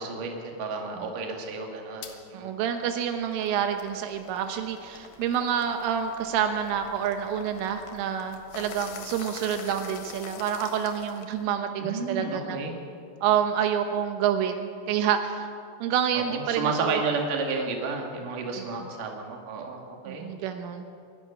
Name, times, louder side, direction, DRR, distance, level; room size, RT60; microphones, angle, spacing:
voice 1, 0.0-2.5 11.8-12.7 16.1-20.3, right 4 dB, 50° right, 1 dB, 3.4 m, -31 dB
Bong Rip, 2.0-2.2 2.7-11.5, left 6 dB, 60° left, 2.7 m, -45 dB
voice 2, 2.3-12.6 13.2-15.5 15.8-17.0 20.1-20.8, right 8 dB, 80° right, 6 dB, 3.6 m, -28 dB
24.0 x 11.5 x 9.8 m, 2.3 s
omnidirectional pair, 5.7 m